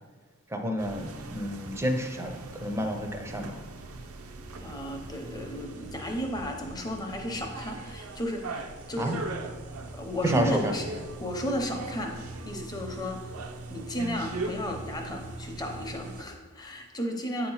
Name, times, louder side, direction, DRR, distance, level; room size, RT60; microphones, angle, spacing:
voice 1, 0.5-3.6 9.0-9.2 10.2-10.8, equal, 10° right, 4 dB, 0.6 m, -30 dB
sound 1, 0.8-16.2, right 3 dB, 70° right, 0.5 m, -40 dB
voice 2, 4.6-9.2 9.9-10.8 11.2-12.2 12.4-13.4 13.7-17.5, equal, 20° left, 2 dB, 0.8 m, -34 dB
8.2 x 2.9 x 5.6 m, 1.5 s
head